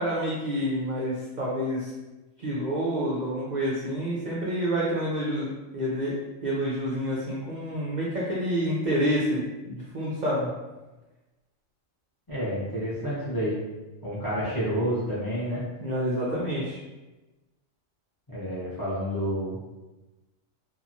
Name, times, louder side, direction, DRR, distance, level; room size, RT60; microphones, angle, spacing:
voice 1, 0.0-1.9 2.4-6.1 6.4-10.5 15.8-16.8, equal, 70° right, -6 dB, 0.4 m, -28 dB
voice 2, 12.3-13.6 14.0-15.6 18.3-19.6, equal, 25° left, -8 dB, 0.5 m, -29 dB
2.8 x 2.3 x 2.5 m, 1.1 s
omnidirectional pair, 1.4 m